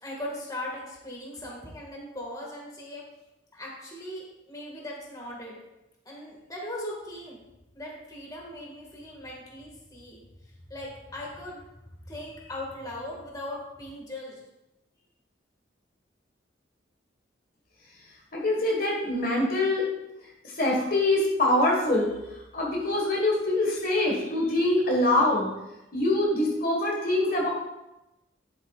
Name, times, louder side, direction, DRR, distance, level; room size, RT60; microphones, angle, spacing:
voice 1, 0.0-3.0 3.5-5.5 6.1-7.4 7.7-11.6 11.9-14.4, left 1 dB, 20° left, -3 dB, 1.8 m, -39 dB
voice 2, 18.3-19.8 20.6-22.1 22.5-25.5 25.9-27.5, left 1 dB, 50° left, -2 dB, 1.6 m, -24 dB
11.0 x 7.6 x 2.4 m, 0.96 s
head